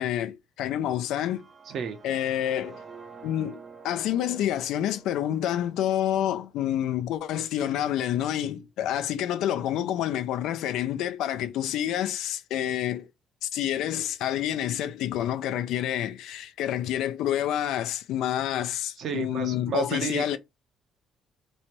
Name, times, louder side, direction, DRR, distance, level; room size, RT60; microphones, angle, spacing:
voice 1, 0.0-1.4 2.0-2.8 3.2-3.6 3.8-13.1 13.4-20.4, left 11 dB, 90° left, 0.6 m, -28 dB
sound 1, 1.1-7.1, right 5 dB, 25° right, 0.6 m, -49 dB
voice 2, 1.7-2.0 19.0-20.4, right 7 dB, 55° right, 0.9 m, -32 dB
3.2 x 2.8 x 4.5 m
cardioid pair, 155°, 0 cm